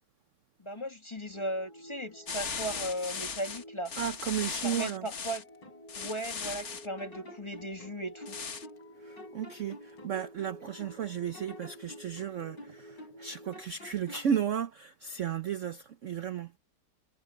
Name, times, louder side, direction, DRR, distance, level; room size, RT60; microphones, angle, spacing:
voice 1, 0.6-3.9 4.6-5.4 6.0-8.4, right 1 dB, 15° left, 1.6 m, -37 dB
sound 1, 1.3-13.6, equal, 60° left, 2.5 m, -51 dB
sound 2, 2.3-5.4 5.9-6.9 8.3-8.7, left 5 dB, 45° left, 1.6 m, -38 dB
voice 2, 4.0-5.1 9.0-16.5, right 8 dB, 55° right, 0.9 m, -34 dB
sound 3, 5.6-6.6 7.0-8.9 9.2-11.0 11.3-13.3 13.5-14.3, left 1 dB, 90° left, 7.0 m, -50 dB
omnidirectional pair, 1.9 m